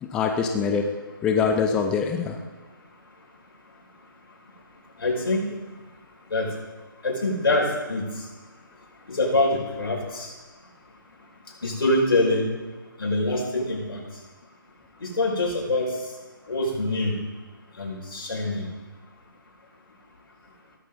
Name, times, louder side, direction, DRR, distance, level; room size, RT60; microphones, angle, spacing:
voice 1, 0.0-0.9 1.2-2.4, left 6 dB, 5° left, 4 dB, 0.4 m, -24 dB
voice 2, 5.0-5.4 6.3-6.5 7.0-8.0 9.1-10.3 11.6-12.5 13.0-14.0 15.0-15.9 16.5-17.2 17.8-18.7, left 2 dB, 85° left, -2 dB, 5.3 m, -24 dB
15.5 x 13.5 x 3.9 m, 1.3 s
hypercardioid pair, 165°, 12 cm